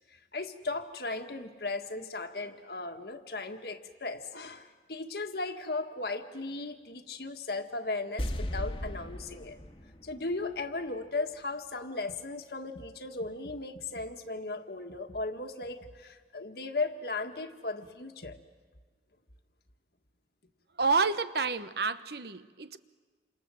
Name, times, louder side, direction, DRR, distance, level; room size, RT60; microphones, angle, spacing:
voice 1, 0.1-9.6 10.0-18.4, left 3 dB, 60° left, 1.7 m, -36 dB
sound 1, 8.2-11.4 11.6-11.7, equal, 30° left, 1.6 m, -38 dB
voice 2, 20.8-22.8, right 4 dB, 65° right, 1.0 m, -29 dB
29.0 x 26.5 x 7.8 m
head